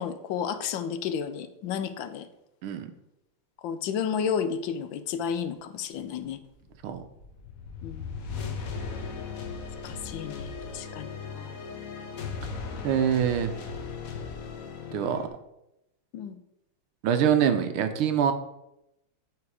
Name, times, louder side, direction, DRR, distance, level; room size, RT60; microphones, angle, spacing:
voice 1, 0.0-2.3 3.6-6.4 7.8-8.2 9.8-11.6 16.1-16.4, left 7 dB, 75° left, 10 dB, 1.3 m, -32 dB
sound 1, 6.2-15.3, left 5 dB, 55° left, 1.1 m, -37 dB
voice 2, 12.8-13.5 14.9-15.3 17.0-18.3, right 8 dB, 80° right, 8 dB, 1.6 m, -24 dB
8.4 x 4.8 x 4.8 m, 0.86 s
omnidirectional pair, 2.3 m